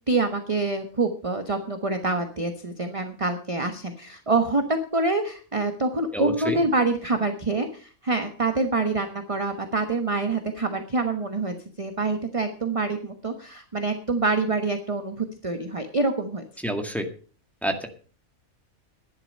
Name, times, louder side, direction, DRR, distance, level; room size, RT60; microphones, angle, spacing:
voice 1, 0.1-16.4, right 3 dB, 25° right, 6 dB, 1.1 m, -26 dB
voice 2, 6.1-6.6 16.6-17.1 17.6-17.9, right 1 dB, ahead, 4 dB, 1.8 m, -28 dB
12.0 x 11.0 x 5.4 m, 0.39 s
omnidirectional pair, 1.4 m